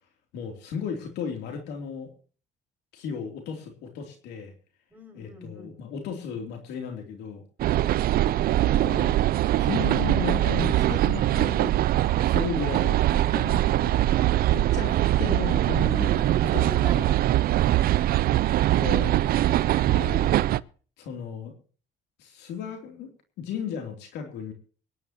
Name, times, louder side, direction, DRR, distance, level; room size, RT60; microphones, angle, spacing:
voice 1, 0.3-2.1 2.9-4.5 5.1-7.4 8.6-9.2 9.6-11.8 12.2-14.1 14.5-16.1 16.5-16.6 16.9-17.0 18.7-19.2 19.9-20.3 21.0-21.5 22.2-23.1 23.4-24.5, left 7 dB, 85° left, 4 dB, 3.2 m, -35 dB
voice 2, 4.9-5.8 15.4-17.3, equal, 10° right, 0 dB, 5.7 m, -41 dB
sound 1, 7.6-20.6, right 14 dB, 60° right, 0.6 m, -22 dB
24.0 x 11.0 x 3.0 m, 0.40 s
cardioid pair, 110°, 17 cm